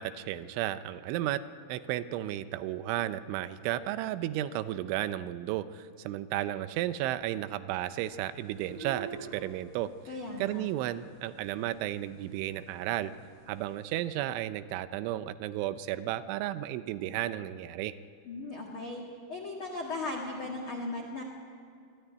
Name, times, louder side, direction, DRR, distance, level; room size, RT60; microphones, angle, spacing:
voice 1, 0.0-1.4 1.7-9.9 10.4-13.1 13.5-17.9, right 13 dB, 85° right, 13 dB, 3.1 m, -33 dB
sound 1, 8.0-14.0, right 5 dB, 35° right, 3.0 m, -49 dB
voice 2, 10.1-10.6 18.2-19.0 19.3-21.2, left 2 dB, 55° left, -1 dB, 1.4 m, -37 dB
23.5 x 13.5 x 9.4 m, 2.4 s
omnidirectional pair, 5.4 m